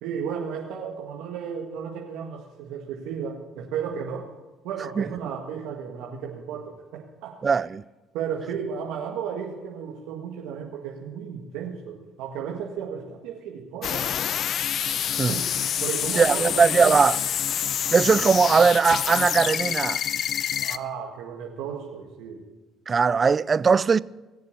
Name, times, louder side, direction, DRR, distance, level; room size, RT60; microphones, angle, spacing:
voice 1, 0.0-4.3 4.6-7.4 8.1-14.1 15.3-15.5 15.8-17.0 20.6-22.4, right 7 dB, 80° right, 1.8 m, -34 dB
voice 2, 7.4-7.8 15.2-15.3 16.2-17.2 17.9-20.0 22.9-24.0, right 5 dB, 40° right, 0.4 m, -20 dB
sound 1, 13.8-20.8, left 9 dB, 60° left, 0.6 m, -27 dB
21.0 x 7.1 x 8.2 m
supercardioid pair, 70°, 0 cm